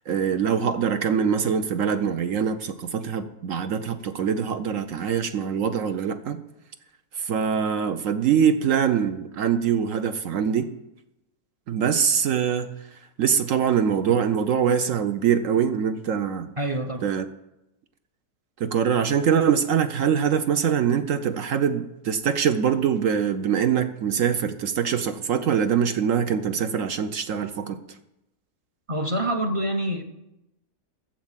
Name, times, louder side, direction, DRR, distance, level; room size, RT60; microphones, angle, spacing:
voice 1, 0.1-6.4 7.2-10.7 11.7-12.7 13.2-16.5 17.0-17.3 18.6-27.8, right 7 dB, 60° right, 9 dB, 0.9 m, -23 dB
voice 2, 16.6-17.0 28.9-30.0, right 1 dB, 30° right, 5 dB, 0.7 m, -26 dB
11.5 x 7.4 x 7.3 m, 0.90 s
omnidirectional pair, 1.8 m